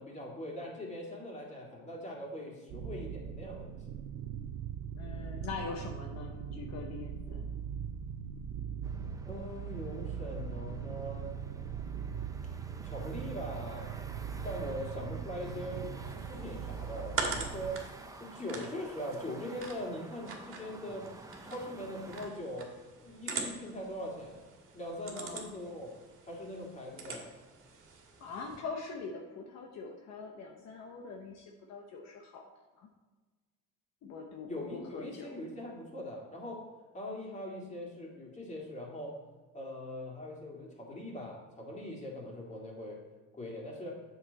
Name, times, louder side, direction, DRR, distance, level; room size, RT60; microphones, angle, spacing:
voice 1, 0.0-3.7 9.3-11.3 12.8-14.1 14.4-17.8 18.2-21.1 21.4-22.7 23.0-24.4 24.7-25.9 26.3-27.3 34.5-36.6 36.9-39.1 39.5-43.0 43.3-44.0, left 1 dB, 25° left, -2 dB, 2.7 m, -41 dB
sound 1, 2.7-17.7, right 8 dB, 75° right, 0.6 m, -40 dB
voice 2, 5.0-7.5 25.1-25.6 28.2-32.5 32.8-32.9 34.0-35.4, left 4 dB, 65° left, 1 dB, 1.1 m, -43 dB
sound 2, 8.8-22.3, right 2 dB, 10° right, 0.8 m, -51 dB
sound 3, 16.1-28.6, right 4 dB, 45° right, 1.8 m, -43 dB
7.9 x 6.7 x 4.1 m, 1.3 s
cardioid pair, 100°, 29 cm